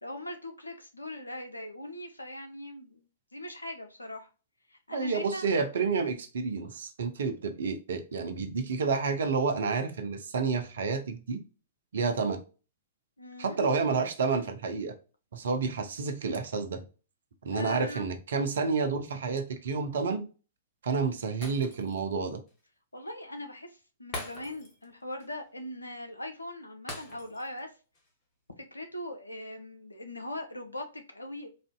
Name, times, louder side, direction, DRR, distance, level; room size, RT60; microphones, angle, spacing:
voice 1, 0.0-3.1 3.3-4.3 4.7-5.5 13.2-13.6 17.5-18.1 22.9-27.7 28.6-31.5, left 1 dB, 85° left, 0.7 m, -40 dB
voice 2, 4.9-11.4 11.9-12.4 13.4-14.9 15.3-16.8 17.4-20.2 20.8-22.4, right 4 dB, 60° right, 0.7 m, -29 dB
Shatter, 21.4-22.1 22.5-22.6 24.1-24.9 25.2-25.4 26.9-27.6 27.9-28.1, left 2 dB, 30° left, 1.2 m, -42 dB
4.2 x 2.6 x 2.2 m
figure-of-eight pair, 110°, 0 cm